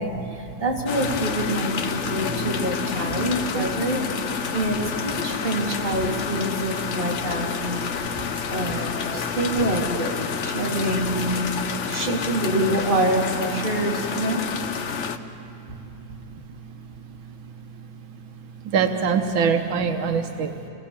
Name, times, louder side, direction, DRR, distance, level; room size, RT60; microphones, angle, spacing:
voice 1, 0.0-4.0 4.5-11.4 11.7-14.4 15.7-15.8 16.2-16.3 19.9-20.0 20.2-20.7, right 1 dB, 25° right, -2 dB, 2.9 m, -26 dB
sound 1, 0.8-15.2, left 6 dB, 55° left, 0.8 m, -29 dB
voice 2, 18.7-20.5, right 6 dB, 80° right, 5 dB, 1.8 m, -23 dB
28.0 x 18.5 x 7.0 m, 2.8 s
omnidirectional pair, 2.2 m